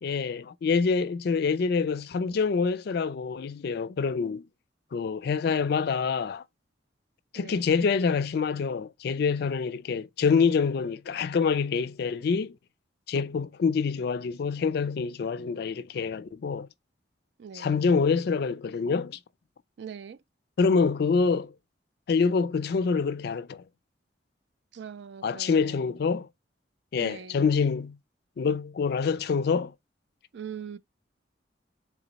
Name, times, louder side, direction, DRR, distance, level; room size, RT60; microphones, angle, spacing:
voice 1, 0.0-4.5 4.9-6.4 7.3-12.6 13.1-16.7 17.5-19.2 20.6-21.5 22.1-23.6 25.2-26.3 26.9-28.0 28.4-29.7, left 5 dB, 60° left, 0.3 m, -26 dB
voice 2, 17.4-17.8 19.8-20.2 24.7-26.0 27.0-27.4 30.3-30.8, right 7 dB, 65° right, 0.3 m, -42 dB
3.7 x 2.9 x 3.9 m
head